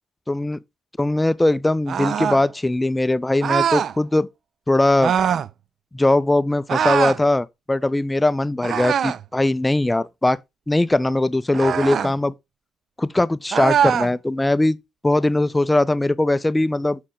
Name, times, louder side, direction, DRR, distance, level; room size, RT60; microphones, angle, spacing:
voice 1, 0.3-0.6 1.0-4.3 4.7-5.1 5.9-10.4 10.7-12.3 13.0-14.8 15.0-17.0, left 2 dB, 15° left, 0.4 m, -20 dB
sound 1, 1.9-2.4 3.4-3.9 5.0-5.5 6.7-7.2 8.6-9.3 11.5-12.1 13.5-14.1, right 8 dB, 60° right, 0.3 m, -22 dB
6.2 x 4.5 x 3.6 m
cardioid pair, 90°, 0 cm